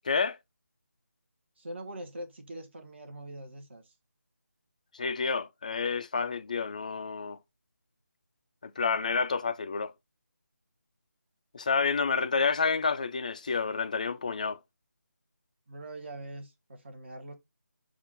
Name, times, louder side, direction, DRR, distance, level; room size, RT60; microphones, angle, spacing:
voice 1, 0.1-0.4 4.9-7.4 8.6-9.9 11.5-14.6, left 5 dB, 25° left, 0.4 m, -29 dB
voice 2, 1.6-3.9 15.7-17.3, right 1 dB, 40° right, 1.3 m, -43 dB
7.0 x 2.5 x 5.3 m
figure-of-eight pair, 165°, 10 cm